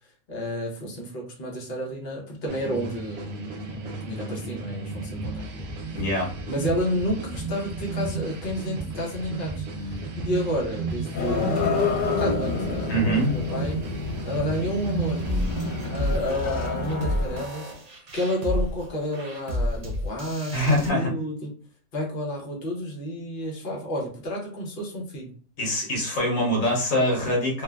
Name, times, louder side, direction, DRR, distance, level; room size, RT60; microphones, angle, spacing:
voice 1, 0.0-5.7 6.5-15.3 15.9-17.7 18.1-21.5 21.9-25.3, equal, 45° left, -3 dB, 0.9 m, -31 dB
sound 1, 2.5-16.2, right 3 dB, 85° right, 1.1 m, -34 dB
voice 2, 5.9-6.3 12.9-13.3 20.5-21.1 25.6-27.6, equal, 70° left, -2 dB, 1.3 m, -24 dB
sound 2, 11.1-17.4, left 4 dB, 90° left, 1.1 m, -29 dB
sound 3, 15.2-20.9, equal, 65° right, 0.4 m, -30 dB
3.1 x 2.1 x 2.3 m, 0.43 s
omnidirectional pair, 1.4 m